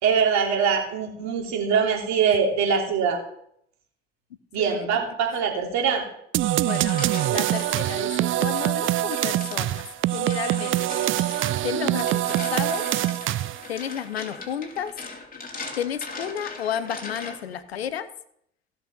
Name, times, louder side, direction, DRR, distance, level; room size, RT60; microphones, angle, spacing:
voice 1, 0.0-3.2 4.5-6.0, right 6 dB, 65° right, 1 dB, 3.1 m, -23 dB
voice 2, 4.6-4.9 6.6-7.0 7.3-9.8 10.1-11.1 11.6-12.9 13.7-14.9 15.8-18.1, left 9 dB, 90° left, 14 dB, 0.7 m, -32 dB
sound 1, 6.3-13.7, right 14 dB, 45° right, 0.4 m, -24 dB
sound 2, 6.4-7.9 8.4-17.6, left 3 dB, 30° left, 3.2 m, -40 dB
16.0 x 6.3 x 5.5 m, 0.71 s
hypercardioid pair, 50°, 30 cm